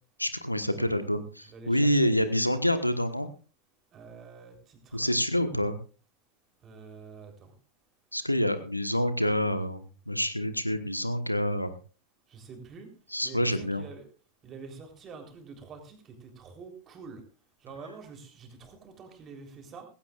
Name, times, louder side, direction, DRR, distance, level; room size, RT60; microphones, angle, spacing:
voice 1, 0.2-3.3 4.9-5.8 8.1-11.7 13.1-13.8, equal, 90° left, 11 dB, 1.2 m, -27 dB
voice 2, 1.5-2.1 3.9-5.1 6.6-7.5 12.3-12.9 13.2-13.5 13.8-14.0 14.4-16.0 16.4-17.2 17.6-19.9, right 5 dB, 30° right, 4 dB, 3.7 m, -46 dB
18.0 x 16.5 x 2.5 m, 0.35 s
figure-of-eight pair, 90°, 0 cm